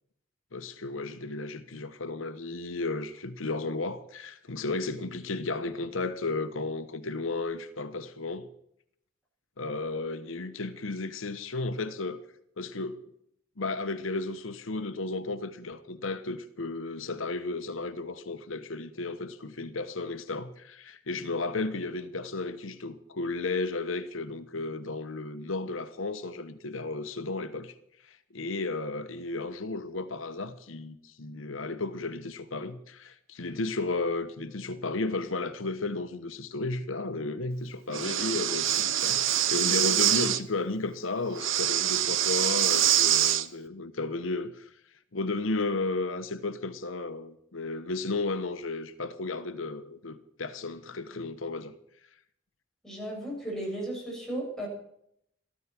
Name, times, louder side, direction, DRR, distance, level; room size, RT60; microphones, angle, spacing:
voice 1, 0.5-8.5 9.6-12.2 12.6-13.0 13.6-27.8 28.0-51.7, left 3 dB, 90° left, 1.0 m, -34 dB
Breathing, 37.9-40.4 41.3-43.5, right 11 dB, 75° right, 0.9 m, -25 dB
voice 2, 52.8-54.7, right 1 dB, ahead, 7.2 m, -35 dB
14.0 x 13.0 x 6.0 m
head